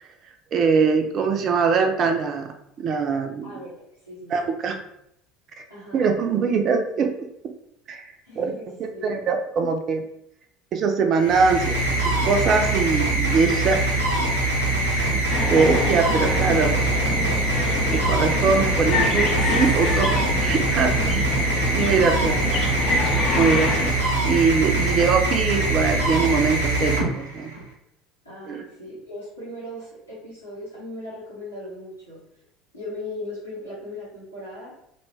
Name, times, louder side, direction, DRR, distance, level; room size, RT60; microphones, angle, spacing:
voice 1, 0.5-2.5 2.8-3.5 4.3-4.8 5.9-7.5 7.9-8.1 8.4-8.5 9.0-10.1 10.7-11.9 12.2-13.8 14.9-16.7 17.9-21.2 21.7-22.5 22.8-23.0 23.3-23.9 24.2-27.5 28.5-28.6, right 5 dB, 40° right, 5 dB, 0.4 m, -22 dB
voice 2, 3.4-3.7 4.1-4.5 5.7-6.1 8.2-9.3 20.5-21.0 28.2-32.2 32.7-34.8, left 1 dB, 90° left, -11 dB, 0.9 m, -38 dB
sound 1, 11.1-27.7, right 2 dB, 80° right, 0.6 m, -23 dB
sound 2, 15.3-23.9, left 3 dB, 40° left, 0.5 m, -27 dB
2.5 x 2.2 x 3.1 m, 0.75 s
figure-of-eight pair, 65°, 0 cm